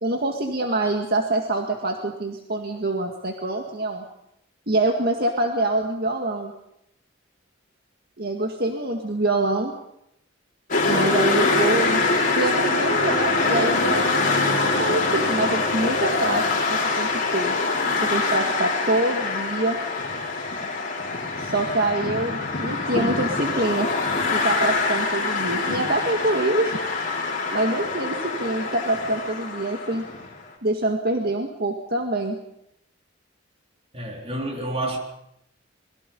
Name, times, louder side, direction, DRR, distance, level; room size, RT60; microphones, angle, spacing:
voice 1, 0.0-4.1 4.7-6.5 8.2-9.7 10.9-17.6 18.0-19.8 21.4-23.9 24.2-26.8 27.5-30.0 30.6-32.4, right 2 dB, 50° right, 2.0 m, -25 dB
sound 1, 10.7-30.3, left 3 dB, 45° left, 5.3 m, -24 dB
sound 2, 12.6-16.4, left 1 dB, 20° left, 5.0 m, -36 dB
voice 2, 33.9-35.0, right 1 dB, 30° right, 4.0 m, -29 dB
26.5 x 22.0 x 5.5 m
head